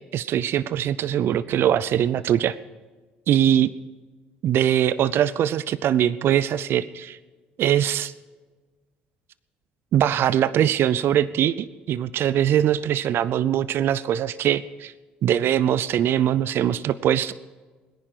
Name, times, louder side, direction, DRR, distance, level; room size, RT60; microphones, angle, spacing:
voice 1, 0.0-2.6 3.3-3.7 4.4-7.2 7.6-8.1 9.9-14.9 15.2-17.3, right 10 dB, 60° right, 17 dB, 0.6 m, -22 dB
22.0 x 10.5 x 5.0 m, 1.3 s
hypercardioid pair, 60°, 5 cm